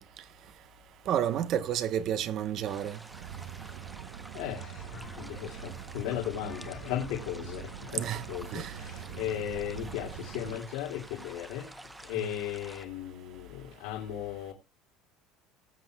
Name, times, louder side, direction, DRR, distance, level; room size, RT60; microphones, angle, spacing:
voice 1, 1.1-3.0 7.9-8.2 8.5-8.7 12.2-12.3, right 10 dB, 40° right, 0.8 m, -30 dB
sound 1, 2.6-12.8, right 1 dB, 5° right, 0.7 m, -50 dB
sound 2, 3.1-10.6, right 10 dB, 75° right, 0.6 m, -44 dB
voice 2, 4.3-11.7 12.0-14.5, left 11 dB, 90° left, 2.1 m, -36 dB
sound 3, 4.9-10.3, left 5 dB, 25° left, 1.8 m, -52 dB
19.5 x 7.7 x 2.2 m
cardioid pair, 170°, 0 cm